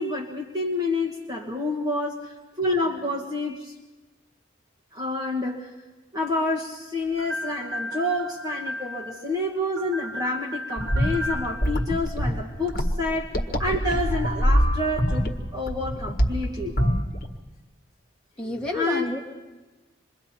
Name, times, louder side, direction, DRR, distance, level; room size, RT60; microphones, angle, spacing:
voice 1, 0.0-3.7 4.9-5.7 6.1-13.3 13.6-16.8 18.7-19.2, left 2 dB, 20° right, -1 dB, 1.6 m, -28 dB
sound 1, 7.2-9.4 9.8-12.1 14.0-15.3 16.8-17.0, equal, 55° right, 1.2 m, -35 dB
sound 2, 10.8-17.3, equal, 45° left, 1.6 m, -25 dB
voice 2, 18.4-19.2, left 1 dB, 5° left, -3 dB, 2.4 m, -29 dB
27.5 x 23.0 x 4.4 m, 1.2 s
head